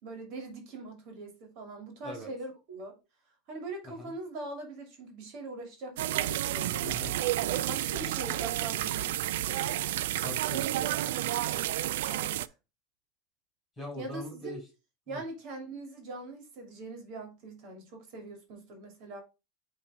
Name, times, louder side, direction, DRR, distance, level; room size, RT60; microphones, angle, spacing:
voice 1, 0.0-3.0 3.5-6.8 7.5-10.3 12.0-12.5 14.0-14.6 15.1-19.2, right 2 dB, 45° right, 2.7 m, -42 dB
sound 1, 6.0-12.5, right 14 dB, 85° right, 0.4 m, -31 dB
voice 2, 6.8-7.2 10.2-11.7 13.8-14.6 15.1-15.2, left 1 dB, 5° left, 4.6 m, -42 dB
8.8 x 3.6 x 3.6 m
supercardioid pair, 175°, 0 cm